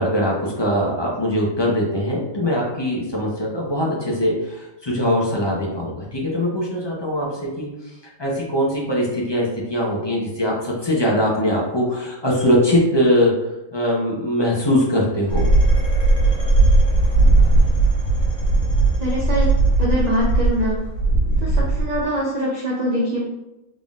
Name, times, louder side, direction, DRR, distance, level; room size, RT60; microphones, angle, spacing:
voice 1, 0.0-7.7 8.2-13.4 13.7-15.4, equal, 25° left, -4 dB, 0.7 m, -21 dB
sound 1, 15.3-22.0, right 2 dB, 70° left, 1.4 m, -17 dB
voice 2, 19.0-19.5 19.8-20.8 21.4-23.2, equal, 40° right, -5 dB, 0.6 m, -23 dB
3.8 x 3.7 x 2.4 m, 0.97 s
omnidirectional pair, 1.4 m